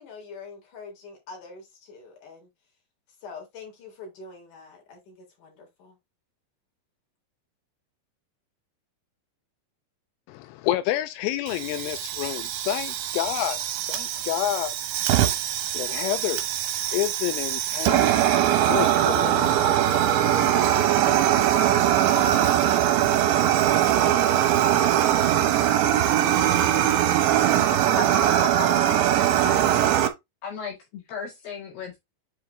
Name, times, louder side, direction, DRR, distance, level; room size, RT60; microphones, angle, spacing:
voice 1, 0.0-2.5 3.2-6.0, left 4 dB, 45° left, 4.2 m, -44 dB
voice 2, 10.3-13.6 13.9-14.7 15.7-16.4 16.9-18.1 18.7-19.5, left 14 dB, 85° left, 3.1 m, -28 dB
Fire, 11.5-30.1, right 11 dB, 75° right, 3.2 m, -22 dB
voice 3, 28.0-29.7 30.4-32.0, left 3 dB, 65° left, 3.4 m, -35 dB
7.9 x 4.6 x 3.3 m
omnidirectional pair, 5.5 m